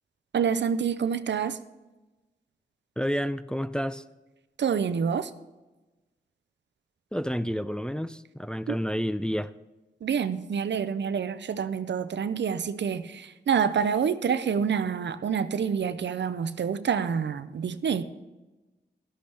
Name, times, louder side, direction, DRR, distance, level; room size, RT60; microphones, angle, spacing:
voice 1, 0.3-1.6 4.6-5.3 8.7-8.8 10.0-18.0, right 7 dB, 85° right, 13 dB, 0.5 m, -27 dB
voice 2, 3.0-4.0 7.1-9.5, equal, 5° left, 13 dB, 0.4 m, -30 dB
12.0 x 11.5 x 3.4 m, 1.1 s
cardioid pair, 50°, 18 cm